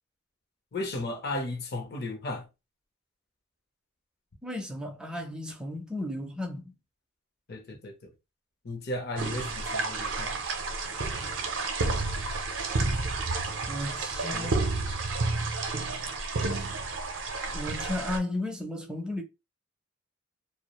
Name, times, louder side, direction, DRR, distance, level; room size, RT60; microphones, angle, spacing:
voice 1, 0.7-2.5 7.5-8.1 8.6-10.4 14.3-14.6, left 2 dB, 55° left, 0.6 m, -35 dB
voice 2, 4.4-6.7 7.7-7.8 13.7-14.7 17.5-19.2, left 1 dB, 5° right, 0.4 m, -34 dB
sound 1, 9.2-18.2, right 3 dB, 70° right, 0.5 m, -30 dB
2.3 x 2.0 x 2.9 m
head